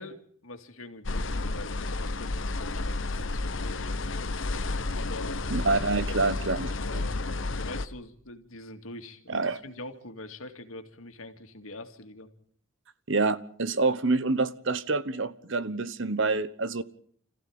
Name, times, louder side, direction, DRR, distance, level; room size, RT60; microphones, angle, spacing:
voice 1, 0.0-4.3 5.0-5.4 6.1-7.2 7.5-12.3, left 2 dB, 80° left, 2.4 m, -44 dB
sound 1, 1.0-7.8, left 2 dB, 65° left, 1.1 m, -31 dB
voice 2, 5.5-6.7 6.9-7.0 9.3-9.6 13.1-16.8, right 3 dB, 60° right, 1.1 m, -27 dB
25.5 x 15.0 x 8.8 m
head